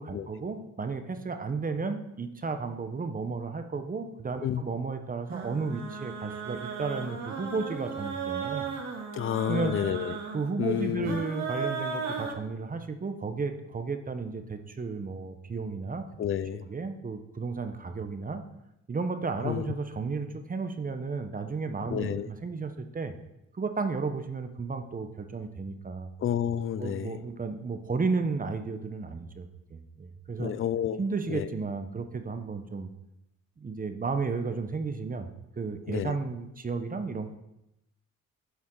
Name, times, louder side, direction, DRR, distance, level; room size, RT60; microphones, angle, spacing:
voice 1, 0.0-8.7 9.5-9.7 10.3-16.1 16.6-18.4 18.9-23.1 23.5-26.1 26.8-30.5 31.0-32.9 33.6-35.3 35.6-37.3, right 4 dB, 30° right, 8 dB, 1.0 m, -33 dB
sound 1, 5.3-12.3, right 5 dB, 65° right, 1.7 m, -36 dB
voice 2, 9.1-10.2 10.6-11.2 16.2-16.7 19.4-19.7 21.9-22.3 26.2-27.2 30.4-31.0 31.3-31.5 35.9-36.2, left 10 dB, 45° left, 15 dB, 0.5 m, -30 dB
11.0 x 7.0 x 3.9 m, 0.88 s
cardioid pair, 90°, 30 cm